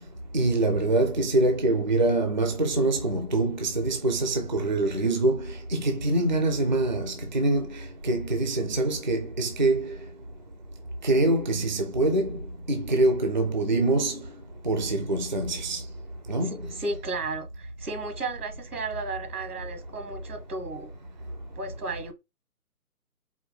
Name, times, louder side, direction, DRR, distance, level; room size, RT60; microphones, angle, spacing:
voice 1, 0.3-10.0 11.0-14.3 14.6-15.8 16.3-16.6, right 2 dB, 35° right, 0.4 m, -25 dB
voice 2, 16.4-20.9 21.6-22.1, right 3 dB, 80° right, 1.2 m, -34 dB
4.8 x 2.4 x 3.2 m
figure-of-eight pair, 145°, 45 cm